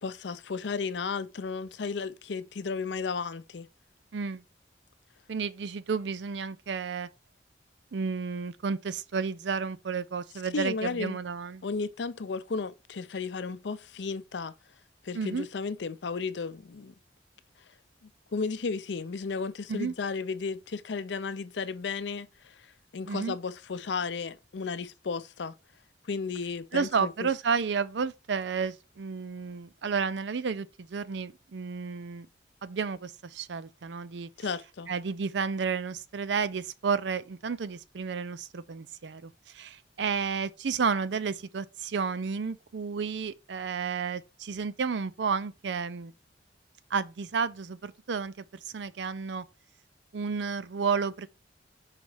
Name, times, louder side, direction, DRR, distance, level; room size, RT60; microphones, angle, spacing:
voice 1, 0.0-3.7 10.5-11.2 11.6-14.5 15.0-16.9 18.3-22.7 22.9-25.6 26.1-27.3 34.4-34.9, left 4 dB, 70° left, 0.5 m, -34 dB
voice 2, 4.1-4.4 5.3-7.1 7.9-11.6 15.1-15.5 19.7-19.9 23.1-23.3 26.7-32.3 32.6-34.3 34.9-46.1 46.9-48.4 48.7-49.4 50.1-51.3, right 5 dB, 70° right, 0.5 m, -31 dB
4.9 x 4.0 x 4.8 m
head